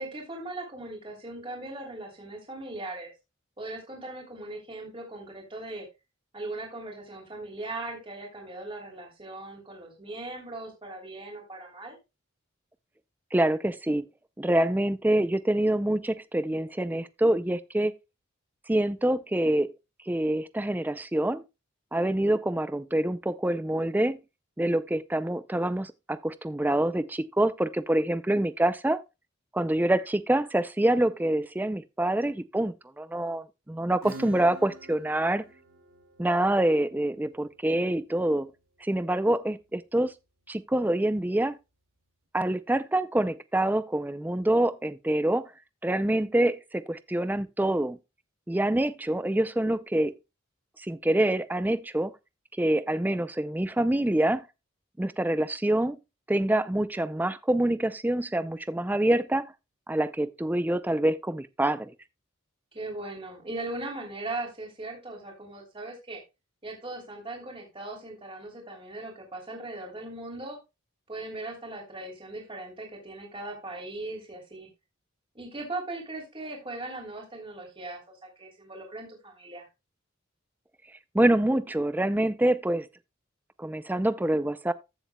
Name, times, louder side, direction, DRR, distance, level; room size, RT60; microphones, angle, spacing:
voice 1, 0.0-3.1 3.6-5.8 6.3-12.0 62.7-66.2 66.6-70.6 71.1-74.7 75.3-78.0 78.4-79.7, right 2 dB, 25° right, 3.1 m, -39 dB
voice 2, 13.3-14.0 14.4-17.9 18.7-19.7 20.1-21.4 21.9-24.2 24.6-29.0 29.5-35.4 36.2-38.5 38.8-40.1 40.5-41.6 42.3-45.5 45.8-48.0 48.5-50.1 50.8-52.1 52.6-54.4 55.0-56.0 56.3-59.5 59.9-61.9 81.1-82.9 83.6-84.7, right 1 dB, 10° right, 0.4 m, -26 dB
Acoustic guitar / Strum, 34.0-39.4, right 1 dB, 85° right, 2.7 m, -49 dB
14.5 x 7.0 x 2.3 m
head